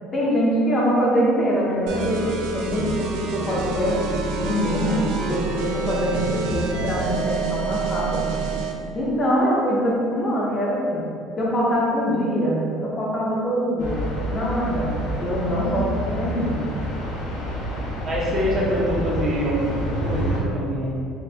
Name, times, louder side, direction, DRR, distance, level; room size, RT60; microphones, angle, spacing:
voice 1, 0.1-4.0 4.4-8.3 8.9-11.0 11.4-16.6, equal, 20° left, -5 dB, 0.5 m, -23 dB
sound 1, 1.9-8.8, right 3 dB, 75° right, 0.4 m, -27 dB
sound 2, 13.8-20.4, equal, 90° left, 1.1 m, -28 dB
voice 2, 18.0-20.9, equal, 30° right, -5 dB, 0.7 m, -25 dB
4.2 x 2.5 x 2.7 m, 2.3 s
cardioid pair, 175°, 0 cm